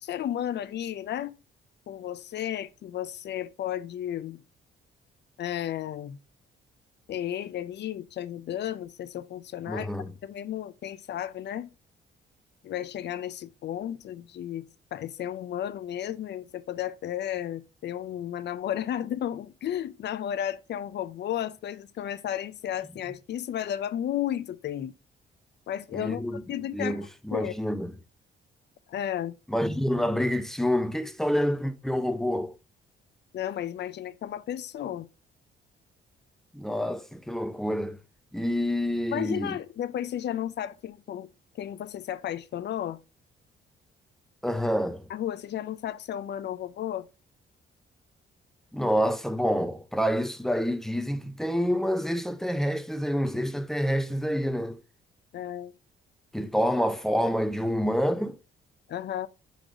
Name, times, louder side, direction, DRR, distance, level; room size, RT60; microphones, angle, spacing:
voice 1, 0.0-1.3 1.9-4.4 5.4-6.2 7.1-9.9 10.2-11.7 12.6-24.9 25.7-26.2 26.5-27.0 27.3-27.5 28.9-29.3 33.3-35.1 39.1-41.3 41.5-43.0 45.1-47.1 55.3-55.7 58.9-59.3, left 11 dB, 60° left, 0.5 m, -33 dB
voice 2, 9.7-10.1 25.9-26.4 26.7-27.9 29.5-32.5 36.5-38.0 38.3-39.6 44.4-45.1 48.7-54.8 56.3-58.4, equal, ahead, 0.6 m, -27 dB
4.9 x 4.0 x 4.8 m
cardioid pair, 90°, 20 cm